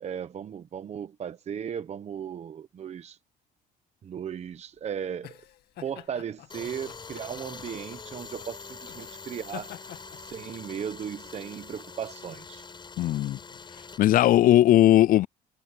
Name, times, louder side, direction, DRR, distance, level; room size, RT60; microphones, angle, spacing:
voice 1, 0.0-3.2 4.0-5.3 5.8-9.7 10.1-12.6, right 8 dB, 40° right, 0.9 m, -36 dB
sound 1, 4.2-13.4, left 12 dB, 70° left, 2.3 m, -49 dB
Tools, 6.5-14.0, left 4 dB, 25° left, 5.4 m, -44 dB
voice 2, 13.0-13.4 14.0-15.3, left 13 dB, 55° left, 0.4 m, -18 dB
cardioid pair, 110°, 17 cm